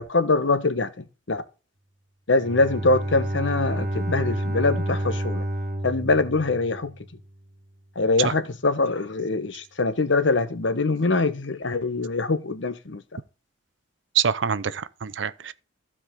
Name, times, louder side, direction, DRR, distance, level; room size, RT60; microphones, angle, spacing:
voice 1, 0.0-1.4 2.3-5.4 5.8-6.9 8.0-13.0, left 3 dB, 65° left, 1.0 m, -23 dB
Bowed string instrument, 2.4-7.2, right 1 dB, 50° right, 1.4 m, -29 dB
voice 2, 14.1-15.5, right 8 dB, 65° right, 0.6 m, -25 dB
15.0 x 4.9 x 3.7 m
head